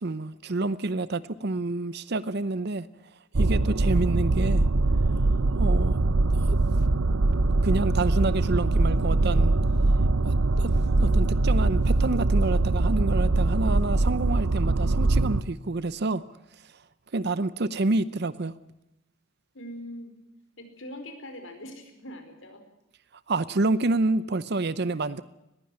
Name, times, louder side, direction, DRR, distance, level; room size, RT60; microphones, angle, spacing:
voice 1, 0.0-2.9 3.4-4.6 5.2-6.0 6.4-6.6 7.6-9.5 10.2-10.7 11.0-16.2 17.1-18.5 23.3-25.2, right 2 dB, 55° right, 0.7 m, -28 dB
sound 1, 3.3-15.4, right 2 dB, 85° right, 0.8 m, -22 dB
voice 2, 19.5-20.1 20.6-22.6 24.9-25.0, equal, 70° left, 4.7 m, -42 dB
20.5 x 15.5 x 9.9 m
head